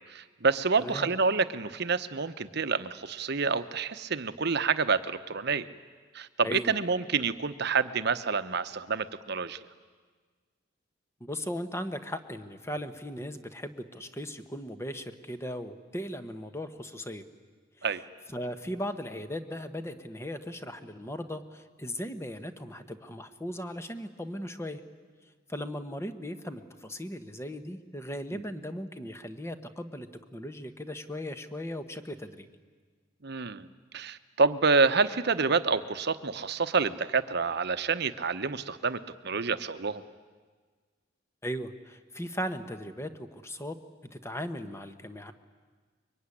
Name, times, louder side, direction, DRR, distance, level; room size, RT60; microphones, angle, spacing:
voice 1, 0.1-5.7 6.1-9.6 17.8-18.0 28.3-28.4 33.2-33.7 33.9-40.0, right 4 dB, 60° right, 11 dB, 1.0 m, -28 dB
voice 2, 0.8-1.1 6.4-6.7 11.2-17.2 17.8-17.9 18.3-24.8 25.5-32.5 41.4-43.8 44.1-45.3, equal, 15° left, 9 dB, 1.3 m, -37 dB
24.5 x 23.5 x 10.0 m, 1.5 s
head